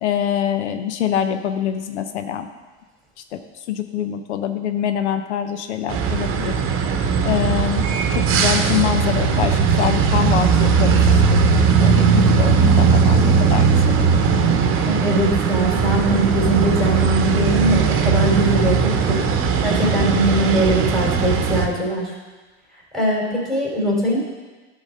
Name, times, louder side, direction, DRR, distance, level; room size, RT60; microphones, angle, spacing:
voice 1, 0.0-2.5 3.3-6.6 7.2-11.4 11.7-14.3, left 9 dB, 85° left, 8 dB, 0.7 m, -25 dB
sound 1, 5.9-21.7, right 5 dB, 40° right, 1.0 m, -18 dB
voice 2, 14.8-19.2 19.6-22.1 22.9-24.2, right 1 dB, ahead, -4 dB, 3.2 m, -21 dB
10.5 x 4.0 x 6.4 m, 1.3 s
hypercardioid pair, 110°, 33 cm